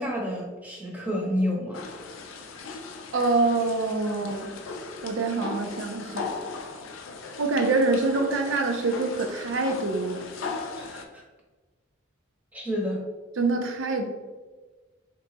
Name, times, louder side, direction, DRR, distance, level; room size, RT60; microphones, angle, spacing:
voice 1, 0.0-1.8 10.8-11.2 12.5-13.0, equal, 10° right, -2 dB, 0.7 m, -29 dB
sound 1, 1.7-11.1, left 4 dB, 90° left, 0.4 m, -38 dB
voice 2, 3.1-4.5 5.0-6.3 7.4-10.3 13.4-14.1, right 3 dB, 75° right, 4 dB, 0.5 m, -25 dB
3.0 x 2.2 x 3.8 m, 1.3 s
head